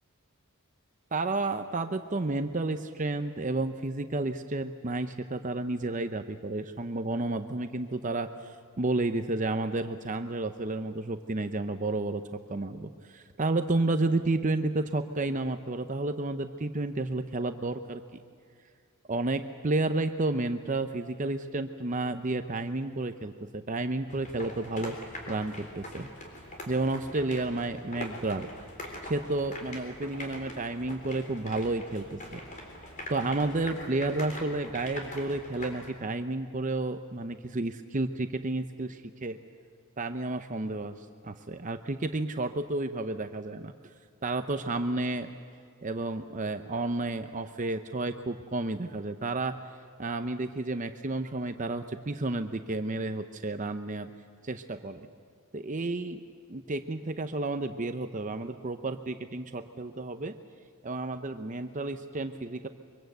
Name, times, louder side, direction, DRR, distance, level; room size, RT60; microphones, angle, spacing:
voice 1, 1.1-18.0 19.1-25.0 25.3-26.1 26.7-28.5 29.0-32.4 33.1-39.4 40.0-43.7 44.2-45.3 45.8-49.6 50.0-54.1 54.4-55.1 55.5-56.2 56.5-60.4 60.8-62.7, right 2 dB, 35° right, 8 dB, 0.7 m, -31 dB
sound 1, 24.1-35.9, left 1 dB, 35° left, 3.9 m, -43 dB
24.0 x 24.0 x 8.0 m, 2.2 s
head